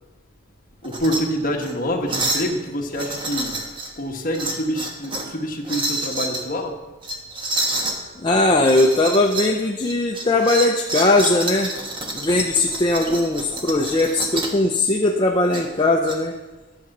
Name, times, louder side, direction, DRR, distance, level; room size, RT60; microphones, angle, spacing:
voice 1, 0.8-3.6 4.0-6.8, equal, 40° left, 1 dB, 1.4 m, -26 dB
sound 1, 0.8-1.2 1.6-1.7 2.1-2.5 2.9-3.9 4.3-5.3 5.6-6.4 7.0-8.0 8.6-9.5 9.8-14.6 15.5-16.2, right 2 dB, 25° right, 1.3 m, -28 dB
voice 2, 8.2-11.7 12.1-16.3, left 2 dB, 25° left, 1 dB, 0.6 m, -19 dB
11.5 x 7.7 x 6.1 m, 1.2 s
head